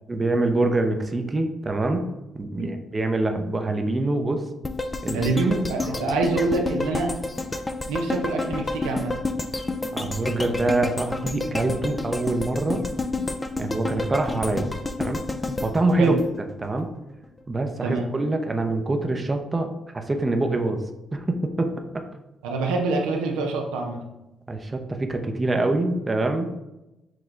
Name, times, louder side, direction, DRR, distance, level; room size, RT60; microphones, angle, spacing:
voice 1, 0.1-2.1 2.3-4.4 5.0-5.2 5.8-6.0 9.9-12.8 13.6-14.7 15.0-15.2 15.6-16.9 17.5-19.7 19.9-20.8 21.1-22.0 24.5-26.5, right 2 dB, 30° right, 5 dB, 0.6 m, -25 dB
sound 1, 4.6-16.8 17.2-17.3, left 2 dB, 20° left, 0.5 m, -30 dB
voice 2, 5.1-7.1 7.9-9.2 16.0-16.2 17.8-18.0 22.4-24.0, right 3 dB, 90° right, 2 dB, 0.6 m, -25 dB
6.2 x 2.2 x 3.7 m, 0.96 s
supercardioid pair, 60°, 0 cm